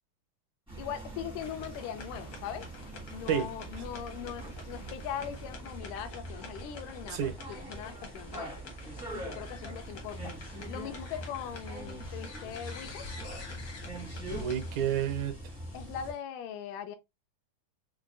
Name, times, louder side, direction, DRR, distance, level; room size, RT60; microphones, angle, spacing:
sound 1, 0.7-16.1, right 2 dB, 5° right, 0.4 m, -43 dB
voice 1, 0.8-2.7 3.1-8.6 9.1-10.3 10.7-13.1 15.7-17.0, left 9 dB, 85° left, 2.1 m, -40 dB
sound 2, 1.4-16.2, left 4 dB, 65° left, 1.0 m, -48 dB
voice 2, 14.4-15.5, right 9 dB, 75° right, 2.1 m, -30 dB
5.5 x 2.3 x 2.4 m
omnidirectional pair, 3.7 m